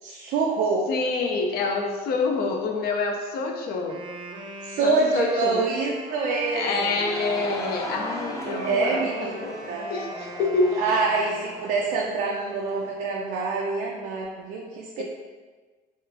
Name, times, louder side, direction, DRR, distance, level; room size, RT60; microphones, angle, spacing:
voice 1, 0.0-0.9 4.6-7.0 8.5-9.3 9.7-9.9 10.8-15.0, right 4 dB, 90° right, -3 dB, 0.5 m, -26 dB
voice 2, 0.9-4.0 4.8-5.6 6.5-10.8 15.0-15.1, left 3 dB, 65° left, 2 dB, 0.5 m, -27 dB
Wind instrument woodwind instrument, 3.7-11.9, right 1 dB, 30° right, 0.6 m, -40 dB
Laughter / Crowd, 6.6-12.9, left 1 dB, 20° left, 0.5 m, -37 dB
3.1 x 2.3 x 3.7 m, 1.4 s
cardioid pair, 110°, 17 cm